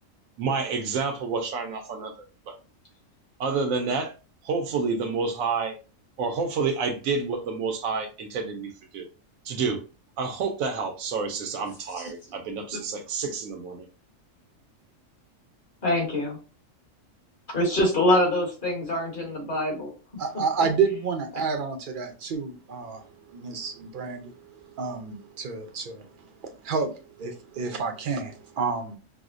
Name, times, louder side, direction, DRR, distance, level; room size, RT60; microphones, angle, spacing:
voice 1, 0.4-2.6 3.4-4.1 4.4-5.8 6.2-9.1 9.4-9.8 10.2-13.9, right 4 dB, 85° right, 1.0 m, -29 dB
voice 2, 15.8-16.4 17.5-19.9, left 1 dB, 40° left, 1.3 m, -24 dB
voice 3, 20.2-23.0 23.3-24.3 24.8-26.1 26.4-26.9 27.2-29.0, right 5 dB, 55° right, 0.6 m, -29 dB
4.7 x 2.0 x 2.4 m
omnidirectional pair, 1.4 m